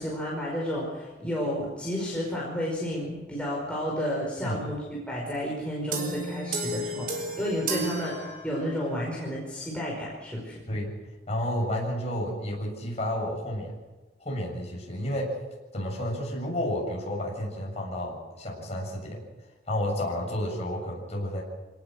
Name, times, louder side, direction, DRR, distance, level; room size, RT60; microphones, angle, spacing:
voice 1, 0.0-10.6, equal, 5° left, -4 dB, 5.1 m, -31 dB
sound 1, 5.9-8.9, right 2 dB, 50° right, 4.1 m, -33 dB
voice 2, 11.3-13.8 14.2-15.4 15.7-19.2 19.7-21.4, left 1 dB, 35° left, -1 dB, 7.1 m, -31 dB
27.0 x 18.5 x 6.5 m, 1.2 s
head